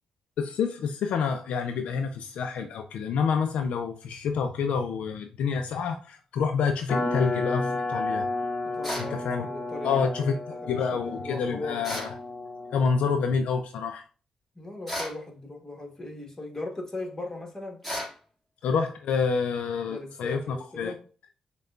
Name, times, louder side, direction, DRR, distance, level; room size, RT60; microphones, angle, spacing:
voice 1, 0.4-8.3 9.0-9.5 9.8-10.3 10.7-12.1 12.7-14.0 18.6-20.9, left 5 dB, 80° left, 0.4 m, -28 dB
sound 1, 6.9-13.1, left 2 dB, 60° left, 0.9 m, -32 dB
voice 2, 8.6-11.9 14.5-17.8 19.9-21.1, left 2 dB, 25° left, 1.2 m, -38 dB
sound 2, 8.8-9.1 11.8-12.2 14.9-15.2 17.8-18.2, equal, ahead, 1.8 m, -33 dB
6.3 x 2.2 x 2.3 m
cardioid pair, 65°, 2 cm